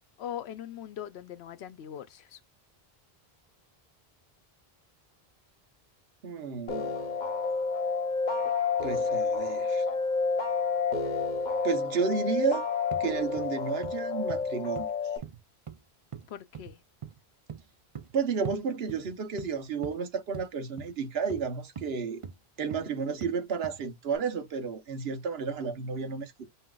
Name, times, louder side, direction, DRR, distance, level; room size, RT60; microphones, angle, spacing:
voice 1, 0.2-2.4 16.3-16.8, left 10 dB, 90° left, 0.9 m, -41 dB
voice 2, 6.2-7.0 8.8-9.8 11.6-12.6 13.0-14.9 18.1-22.2 22.6-26.5, right 5 dB, 75° right, 1.1 m, -32 dB
sound 1, 6.7-15.2, left 4 dB, 50° left, 1.0 m, -29 dB
sound 2, 12.9-13.1 13.4-13.6 13.8-14.0 14.3-14.5 14.8-14.9 15.2-15.8 16.1-16.3 16.5-16.8 17.0-17.2 17.5-17.6 17.9-18.1 18.4-18.6 18.9-19.5 19.8-20.0 20.3-20.5 20.8-20.9 21.3-21.5 21.8-21.9 22.2-22.3 22.7-22.9 23.2-23.3 23.6-23.8 24.1-24.2, right 7 dB, 40° right, 0.5 m, -41 dB
5.5 x 2.8 x 2.3 m
omnidirectional pair, 1.0 m